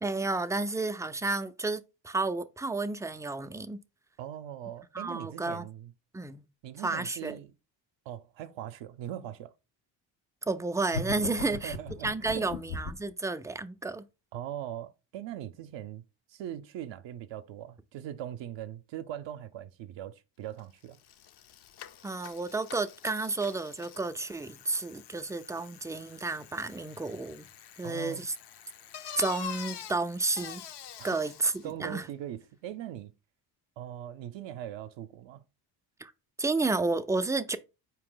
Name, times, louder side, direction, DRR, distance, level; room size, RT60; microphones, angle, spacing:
voice 1, 0.0-3.8 4.9-5.7 6.1-6.5 6.8-7.4 10.4-11.8 12.0-14.1 22.0-27.5 27.8-28.3 29.2-30.6 31.0-32.1 36.0-36.1 36.4-37.6, right 3 dB, 5° right, 0.3 m, -31 dB
voice 2, 4.2-5.9 6.6-7.5 8.1-9.5 11.4-12.5 14.3-16.0 16.3-21.0 27.8-28.2 31.0-31.2 31.6-33.1 33.8-35.4, right 11 dB, 65° right, 0.6 m, -40 dB
sound 1, 10.9-13.1, left 4 dB, 85° left, 1.0 m, -37 dB
Bicycle, 20.6-20.7 20.9-31.7, left 9 dB, 55° left, 0.7 m, -46 dB
4.5 x 2.9 x 3.8 m
supercardioid pair, 70°, 48 cm